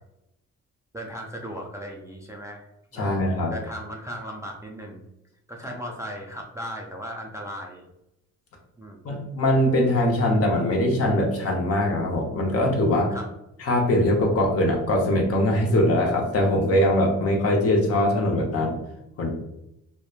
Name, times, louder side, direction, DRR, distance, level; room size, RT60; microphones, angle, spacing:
voice 1, 0.9-3.1 3.5-5.0 5.5-7.9 8.8-9.2 13.1-13.3, equal, 10° right, -1 dB, 0.3 m, -37 dB
voice 2, 2.9-3.5 9.0-13.2 13.6-18.8 19.2-19.4, left 1 dB, 50° left, 1 dB, 0.8 m, -22 dB
2.9 x 2.1 x 2.3 m, 0.86 s
cardioid pair, 90°, 30 cm